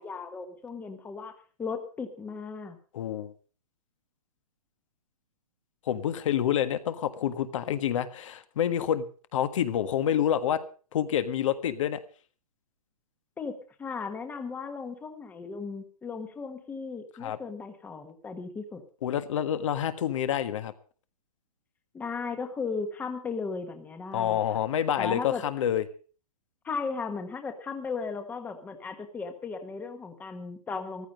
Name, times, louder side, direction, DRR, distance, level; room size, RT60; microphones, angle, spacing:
voice 1, 0.0-2.8 13.4-18.8 21.9-24.6 25.0-25.4 26.6-31.1, left 4 dB, 10° left, 7 dB, 1.3 m, -36 dB
voice 2, 2.9-3.3 5.9-9.0 9.3-10.6 10.9-12.0 17.2-17.4 19.0-20.7 24.1-25.8, left 10 dB, 55° left, 11 dB, 1.5 m, -27 dB
14.5 x 13.0 x 5.3 m, 0.40 s
hypercardioid pair, 155°, 19 cm